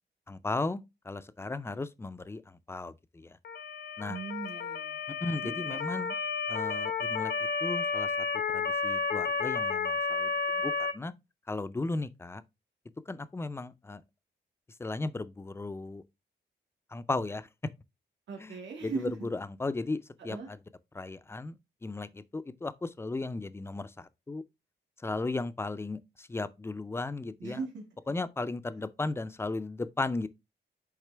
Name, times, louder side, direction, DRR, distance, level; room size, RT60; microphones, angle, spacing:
voice 1, 0.3-3.4 4.0-4.2 5.1-6.2 6.5-11.1 11.5-12.4 13.1-14.0 14.8-16.0 16.9-17.5 18.4-20.6 20.9-24.4 25.0-27.6 28.1-30.3, left 3 dB, 15° left, 0.4 m, -36 dB
Motor vehicle (road) / Siren, 3.4-10.9, left 5 dB, 60° left, 0.6 m, -32 dB
voice 2, 4.1-5.0 5.4-5.8 18.3-19.3 20.3-20.5 27.4-27.8, right 5 dB, 90° right, 1.8 m, -39 dB
8.1 x 3.6 x 3.3 m
wide cardioid pair, 170°, 18 cm